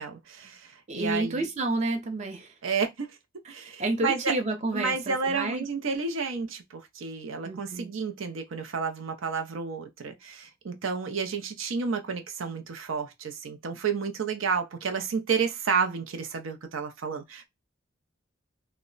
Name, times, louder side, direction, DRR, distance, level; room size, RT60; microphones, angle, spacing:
voice 1, 0.0-1.5 2.6-3.1 3.5-4.3 4.7-17.5, right 5 dB, 85° right, 0.5 m, -31 dB
voice 2, 0.9-2.5 3.4-5.7 7.4-7.9, right 2 dB, 35° right, 0.5 m, -30 dB
2.1 x 2.0 x 3.7 m
head